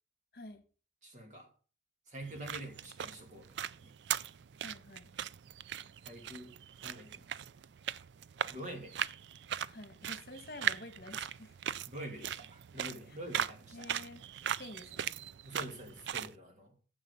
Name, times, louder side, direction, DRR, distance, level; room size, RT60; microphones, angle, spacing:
voice 1, 1.0-1.5 2.1-3.9 6.0-6.6 6.8-7.3 8.5-9.0 11.9-13.9 15.4-16.8, right 1 dB, 40° right, 3 dB, 2.5 m, -46 dB
sound 1, 2.2-16.3, right 9 dB, 75° right, 0.4 m, -39 dB
voice 2, 4.6-5.1 9.7-11.6 13.1-13.2 13.7-14.2 14.6-15.1, left 2 dB, 55° left, 8 dB, 1.5 m, -49 dB
10.0 x 7.2 x 5.5 m, 0.38 s
head